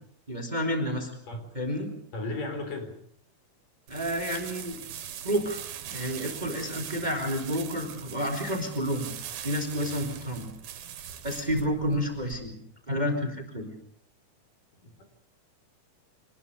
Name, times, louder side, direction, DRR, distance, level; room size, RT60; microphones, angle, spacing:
voice 1, 0.3-1.1 1.5-1.9 3.9-4.8 5.2-5.6 5.9-9.1 9.4-10.5 11.2-12.5 12.9-13.7, equal, 10° right, 6 dB, 3.9 m, -30 dB
voice 2, 2.1-3.0 14.8-15.0, left 2 dB, 60° left, 6 dB, 5.6 m, -35 dB
sound 1, 3.9-12.4, right 9 dB, 75° right, 3.5 m, -41 dB
25.5 x 20.5 x 6.8 m, 0.64 s
omnidirectional pair, 4.4 m